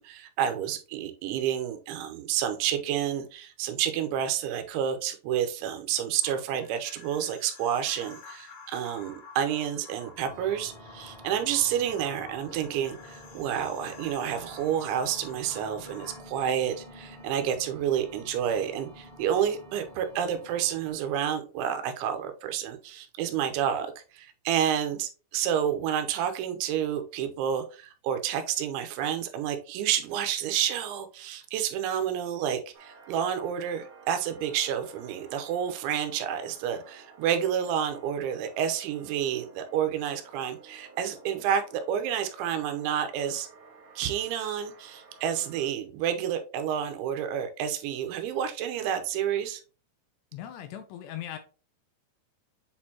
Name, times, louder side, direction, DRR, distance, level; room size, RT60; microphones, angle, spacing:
voice 1, 0.0-43.5 44.0-49.6, right 9 dB, 85° right, 7 dB, 3.1 m, -29 dB
sound 1, 6.2-16.2, left 4 dB, 60° left, 2.4 m, -50 dB
sound 2, 10.3-20.9, left 1 dB, 10° right, 1.4 m, -48 dB
sound 3, 32.7-45.7, right 3 dB, 60° right, 2.2 m, -52 dB
voice 2, 50.3-51.4, left 11 dB, 80° left, 8 dB, 2.5 m, -39 dB
7.8 x 4.4 x 2.8 m, 0.35 s
omnidirectional pair, 5.3 m